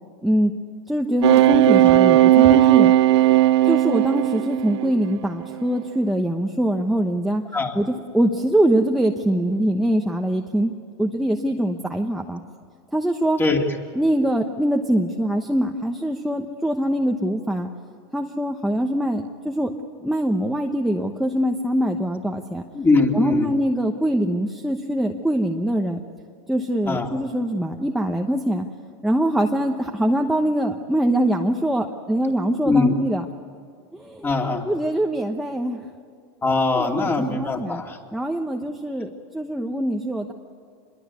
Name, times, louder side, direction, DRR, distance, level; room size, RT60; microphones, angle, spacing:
voice 1, 0.9-2.9 3.7-7.4 7.7-10.7 11.0-12.4 12.9-13.4 13.9-17.7 18.1-19.7 20.0-22.6 23.1-26.0 26.5-28.7 29.0-33.2 33.9-34.3 34.7-35.8 36.8-37.8 38.1-40.3, right 1 dB, ahead, 2 dB, 1.1 m, -23 dB
sound 1, 1.2-5.0 5.5-5.8, right 13 dB, 75° right, 0.7 m, -16 dB
voice 2, 22.7-23.5 26.9-27.1 32.7-32.9 34.2-34.6 36.4-38.0, left 3 dB, 15° left, 3 dB, 2.7 m, -21 dB
26.5 x 22.0 x 8.5 m, 2.2 s
supercardioid pair, 135°, 14 cm